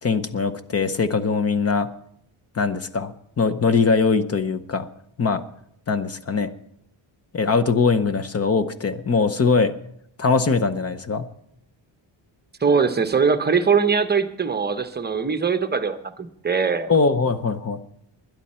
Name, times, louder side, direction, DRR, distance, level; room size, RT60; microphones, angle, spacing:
voice 1, 0.0-1.9 2.5-4.9 5.2-5.4 5.9-6.5 7.3-9.7 10.2-11.3 16.9-17.8, left 4 dB, 30° left, 12 dB, 0.8 m, -21 dB
voice 2, 12.6-16.9, right 5 dB, 20° right, 9 dB, 0.8 m, -21 dB
21.0 x 10.5 x 4.3 m, 0.70 s
wide cardioid pair, 165°, 47 cm